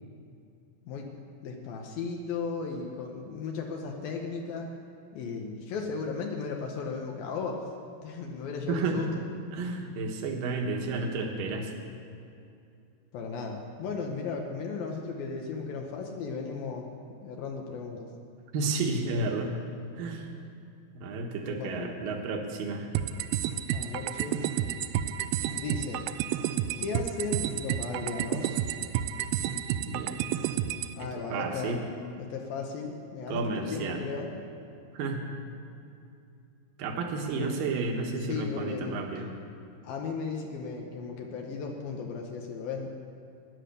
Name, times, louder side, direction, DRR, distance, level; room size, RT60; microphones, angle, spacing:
voice 1, 1.4-4.8 5.1-7.6 8.0-9.2 13.1-16.9 17.2-18.1 21.6-22.0 23.7-24.4 25.6-26.0 26.8-28.6 31.0-31.8 32.2-34.3 37.4-37.6 38.2-39.0 39.8-42.9, left 4 dB, 75° left, 1 dB, 2.7 m, -35 dB
voice 2, 9.5-11.7 18.5-19.5 20.0-20.2 20.9-22.9 29.9-30.2 31.0-31.8 33.3-34.0 34.9-35.2 36.8-39.3, right 3 dB, 65° right, 1 dB, 2.9 m, -31 dB
sound 1, 22.9-30.9, right 11 dB, 85° right, 2.1 m, -30 dB
15.5 x 11.0 x 6.8 m, 2.5 s
omnidirectional pair, 4.5 m